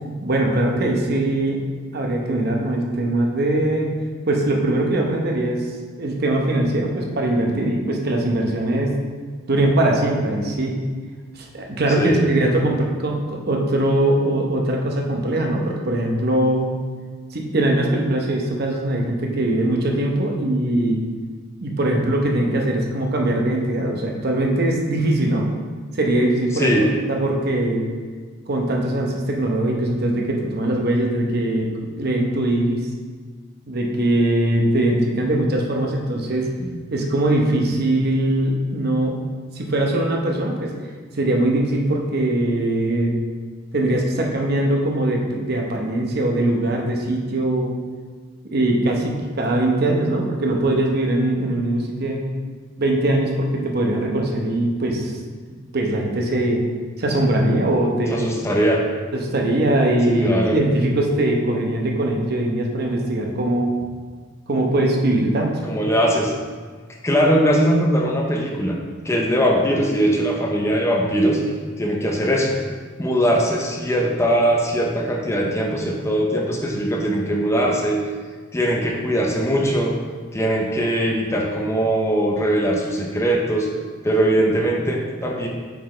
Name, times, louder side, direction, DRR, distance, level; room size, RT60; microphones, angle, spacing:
voice 1, 0.2-1.6 1.9-4.0 4.3-5.7 6.0-9.0 9.5-10.8 11.3-16.7 17.3-21.0 21.6-25.5 25.9-26.7 27.1-27.9 28.5-31.7 32.0-32.8 33.7-36.5 36.9-39.2 39.5-40.7 41.2-43.1 43.7-47.7 48.5-52.2 52.8-55.1 55.7-56.6 57.0-58.3 59.1-63.7 64.5-65.6, right 1 dB, 50° right, 0 dB, 0.8 m, -21 dB
voice 2, 26.5-26.9 36.6-36.8 58.1-58.8 60.1-60.6 65.7-66.3 67.0-68.8 69.0-71.4 71.8-72.6 73.0-78.0 78.5-80.0 80.3-83.7 84.0-85.5, equal, 15° left, -1 dB, 0.6 m, -20 dB
8.3 x 4.1 x 3.2 m, 1.5 s
head